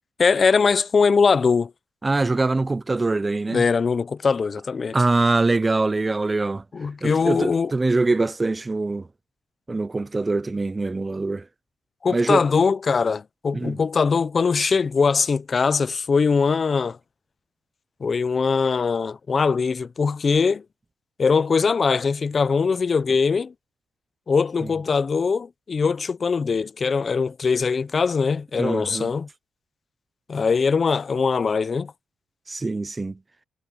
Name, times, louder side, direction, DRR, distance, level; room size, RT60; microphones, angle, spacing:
voice 1, 0.2-1.7 3.5-5.0 6.7-7.7 12.0-17.0 18.0-20.6 21.2-23.5 24.3-29.3 30.3-31.9, left 5 dB, 40° left, 0.7 m, -21 dB
voice 2, 2.0-3.6 4.9-6.6 7.0-9.1 9.7-11.5 12.1-12.4 13.5-13.8 24.6-24.7 28.6-29.1 32.5-33.2, right 3 dB, 20° right, 0.5 m, -23 dB
cardioid pair, 90°, 0 cm